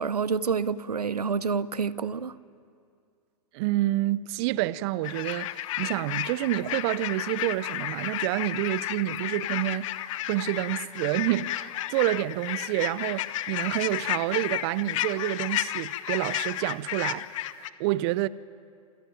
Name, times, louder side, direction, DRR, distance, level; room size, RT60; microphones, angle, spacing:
voice 1, 0.0-2.3, right 5 dB, 90° right, 0.8 m, -28 dB
voice 2, 3.5-17.3 17.6-18.3, right 16 dB, 45° right, 0.7 m, -28 dB
sound 1, 5.0-17.7, left 14 dB, 55° left, 1.1 m, -32 dB
27.5 x 16.5 x 9.4 m
hypercardioid pair, 105°, 19 cm